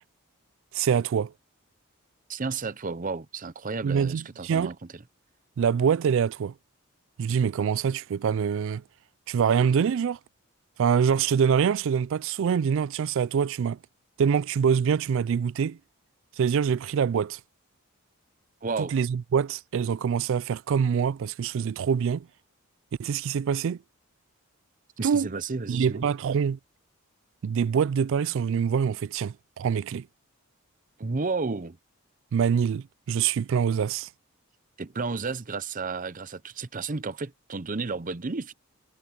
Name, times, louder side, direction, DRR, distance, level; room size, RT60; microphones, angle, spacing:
voice 1, 0.7-1.3 3.8-4.7 5.6-6.5 7.2-8.8 9.3-10.2 10.8-13.8 14.2-15.8 16.4-17.4 18.9-22.3 23.0-23.8 25.0-25.3 25.7-26.6 27.4-30.1 32.3-34.1, right 7 dB, 60° right, 0.3 m, -25 dB
voice 2, 2.3-4.7 18.6-18.9 25.0-26.0 31.0-31.8 34.8-38.5, right 4 dB, 35° right, 0.7 m, -32 dB
head